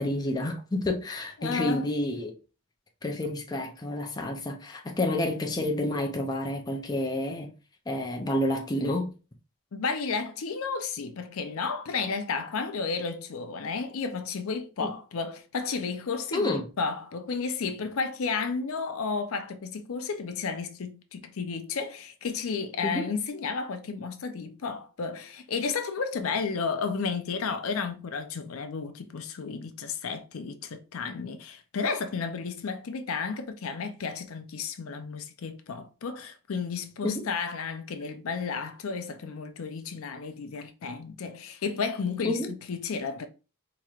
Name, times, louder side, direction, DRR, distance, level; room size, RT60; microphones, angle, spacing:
voice 1, 0.0-2.4 3.0-7.5 7.9-9.1 14.8-14.9 16.3-16.6 22.8-23.1 37.0-37.2 42.2-42.5, left 1 dB, 20° left, 0.5 m, -29 dB
voice 2, 1.4-1.9 9.7-43.3, left 5 dB, 70° left, 0.5 m, -32 dB
4.4 x 3.0 x 2.4 m
head